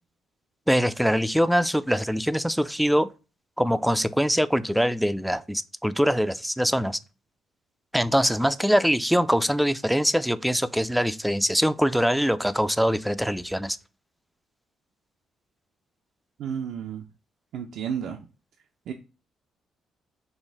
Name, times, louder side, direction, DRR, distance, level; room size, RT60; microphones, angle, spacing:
voice 1, 0.7-3.1 3.6-7.0 7.9-13.8, equal, ahead, 0.3 m, -23 dB
voice 2, 16.4-17.0 17.5-18.2 18.9-19.0, right 8 dB, 75° right, 0.4 m, -32 dB
4.3 x 2.5 x 3.5 m
cardioid pair, 90°, 0 cm